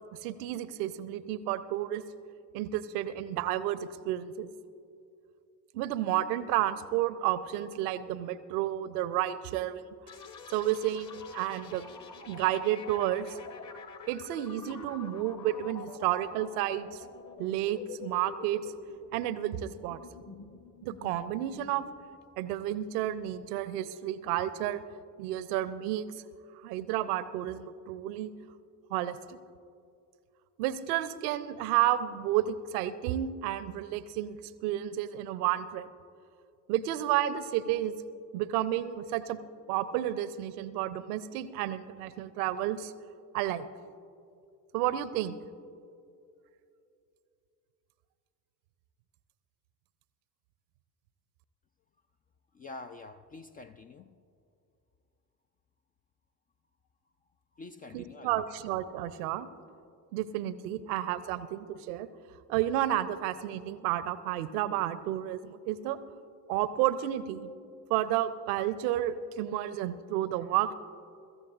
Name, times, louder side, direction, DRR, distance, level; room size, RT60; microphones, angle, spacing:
voice 1, 0.2-2.0 2.5-4.5 5.7-9.8 10.5-11.9 12.3-13.4 14.1-17.0 17.4-18.7 19.1-20.0 20.8-21.9 22.4-24.8 25.2-26.1 26.6-28.3 28.9-29.4 30.6-35.9 36.7-37.9 38.3-39.4 39.7-42.9 43.3-43.7 44.7-45.4 57.9-59.5 60.1-62.1 62.5-66.0 66.5-67.5 67.9-70.7, right 12 dB, 65° right, 15 dB, 0.7 m, -31 dB
sound 1, 10.1-23.7, left 5 dB, 35° left, 1.4 m, -47 dB
voice 2, 52.5-54.2 57.6-58.4, left 3 dB, 20° left, 9 dB, 0.3 m, -46 dB
24.5 x 14.0 x 2.5 m, 2.6 s
figure-of-eight pair, 50°, 49 cm